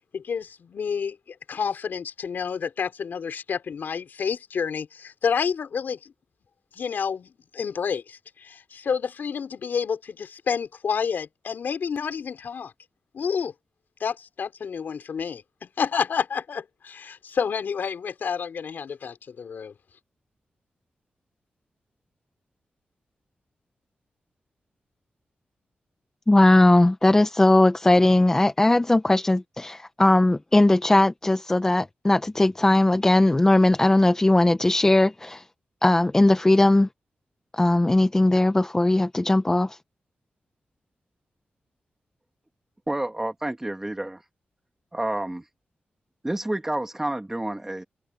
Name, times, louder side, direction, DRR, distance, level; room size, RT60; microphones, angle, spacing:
voice 1, 0.1-6.1 6.7-12.7 13.1-13.5 14.0-19.7, left 6 dB, 70° left, 4.2 m, -29 dB
voice 2, 26.3-35.4 35.8-36.9 37.5-39.8, left 2 dB, 15° left, 0.7 m, -19 dB
voice 3, 42.9-44.2 44.9-45.4 46.2-47.8, right 1 dB, 10° right, 2.2 m, -29 dB
wide cardioid pair, 155°, 3 cm